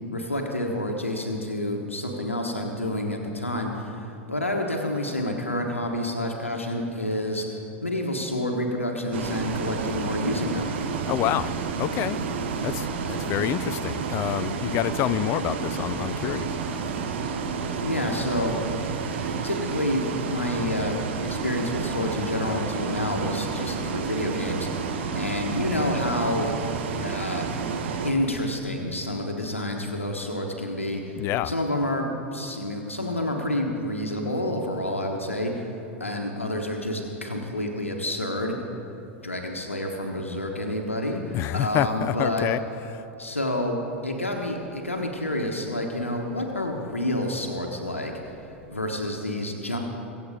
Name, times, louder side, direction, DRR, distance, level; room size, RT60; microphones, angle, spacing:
voice 1, 0.1-7.4 7.8-10.7 17.8-18.6 19.4-20.0 20.3-27.5 28.0-35.7 36.0-38.5 39.2-42.5 43.2-43.7 44.0-48.1 48.7-49.8, left 1 dB, 90° left, 2 dB, 1.3 m, -29 dB
Bus, 9.1-28.1, right 5 dB, 60° right, 1.2 m, -30 dB
voice 2, 11.1-12.2 12.6-16.5 31.2-31.5 41.3-42.6, left 13 dB, 40° left, 16 dB, 0.4 m, -27 dB
23.5 x 7.9 x 5.0 m, 3.0 s
figure-of-eight pair, 85°, 7 cm